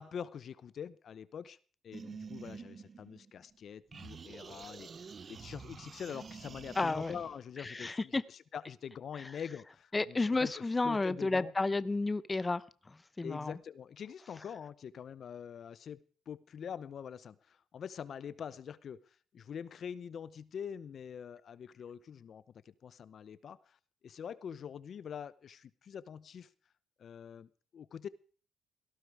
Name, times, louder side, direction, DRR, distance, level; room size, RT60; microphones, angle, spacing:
voice 1, 0.0-1.6 1.8-11.5 13.2-16.0 16.3-19.0 19.3-23.8 24.0-26.5 27.0-28.1, left 7 dB, 55° left, 0.8 m, -45 dB
sound 1, 1.9-3.6 3.9-7.4, right 5 dB, 40° right, 0.8 m, -48 dB
voice 2, 6.8-7.1 7.6-8.2 9.9-12.6 13.2-13.5, left 3 dB, 20° left, 0.8 m, -31 dB
17.5 x 14.5 x 4.8 m
cardioid pair, 90°, 0 cm